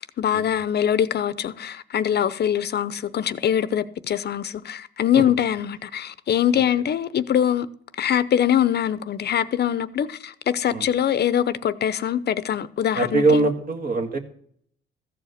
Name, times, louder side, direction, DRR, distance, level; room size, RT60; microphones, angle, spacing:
voice 1, 0.0-7.7 8.0-13.5, left 9 dB, 55° left, 0.7 m, -23 dB
voice 2, 13.0-14.2, right 2 dB, 45° right, 1.8 m, -22 dB
14.0 x 4.9 x 8.1 m
cardioid pair, 90°, 20 cm